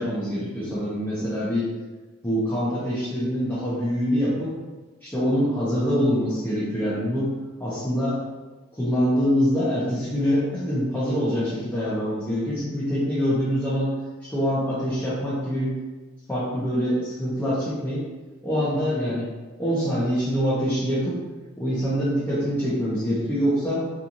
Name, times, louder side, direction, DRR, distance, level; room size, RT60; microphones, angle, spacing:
voice 1, 0.0-1.7 2.2-4.5 5.0-7.3 7.6-8.2 8.7-13.9 14.2-15.7 16.3-18.0 18.4-19.3 19.6-21.2 21.6-23.8, equal, 10° left, -10 dB, 0.6 m, -25 dB
2.8 x 2.5 x 2.5 m, 1.3 s
head